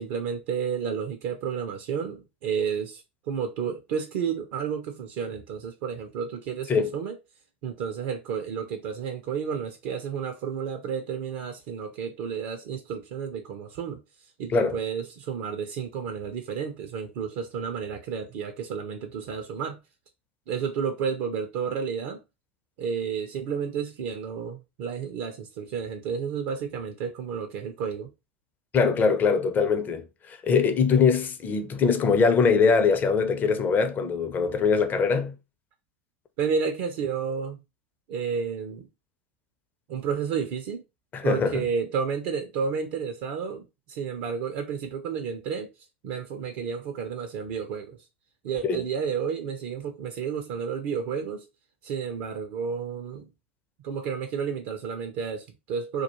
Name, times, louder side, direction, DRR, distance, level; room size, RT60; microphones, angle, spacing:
voice 1, 0.0-7.2 7.6-14.0 14.4-19.8 20.5-22.2 22.8-28.1 36.4-37.6 38.1-38.9 39.9-40.8 41.2-45.7 46.0-48.0 48.4-51.5 51.8-53.3 53.8-56.0, right 6 dB, 55° right, 0.5 m, -31 dB
voice 2, 28.7-35.3 41.1-41.6 48.6-48.8, left 5 dB, 30° left, 0.5 m, -22 dB
2.2 x 2.2 x 2.9 m
figure-of-eight pair, 85°, 6 cm